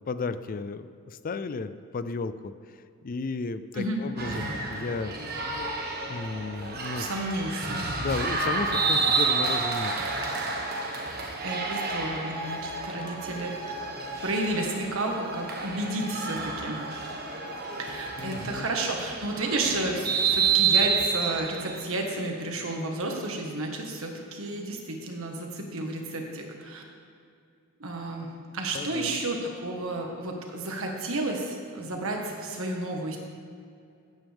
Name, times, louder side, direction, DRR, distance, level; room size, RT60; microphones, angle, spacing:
voice 1, 0.1-5.1 6.1-7.1 8.0-9.9 18.2-18.7 28.7-29.2, left 4 dB, 40° left, 12 dB, 0.4 m, -34 dB
sound 1, 4.2-21.8, right 4 dB, 45° right, 1.5 m, -30 dB
voice 2, 6.9-7.8 11.4-13.7 14.2-16.8 17.8-26.8 27.8-33.2, right 2 dB, 65° right, 1 dB, 1.7 m, -32 dB
16.0 x 9.1 x 3.6 m, 2.4 s
head